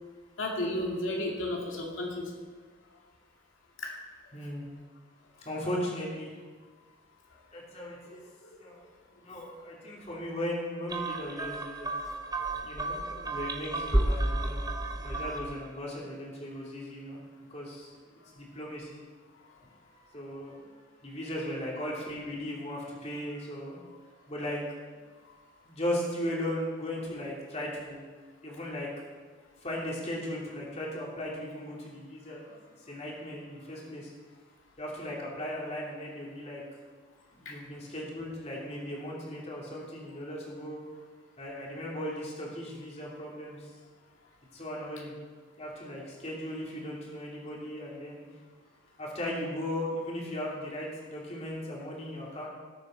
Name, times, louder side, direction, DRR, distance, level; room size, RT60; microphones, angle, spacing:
voice 1, 0.4-2.3 3.8-3.9 8.1-8.5 9.3-9.5 25.2-25.4 37.5-37.6, left 1 dB, 90° left, -1 dB, 2.2 m, -34 dB
voice 2, 4.3-4.7 5.4-6.3 7.5-8.2 8.6-8.8 9.2-11.9 12.6-14.6 15.0-17.2 17.5-17.9 18.3-19.0 20.0-20.6 21.0-23.8 24.3-24.6 25.6-28.0 28.4-28.9 29.6-32.5 32.9-34.1 34.8-36.6 37.3-40.8 41.4-43.7 44.5-45.1 45.6-48.2 49.0-52.5, left 1 dB, 35° left, -4 dB, 2.9 m, -37 dB
sound 1, 10.9-15.7, right 1 dB, 20° right, 0.8 m, -31 dB
19.0 x 8.1 x 4.4 m, 1.5 s
head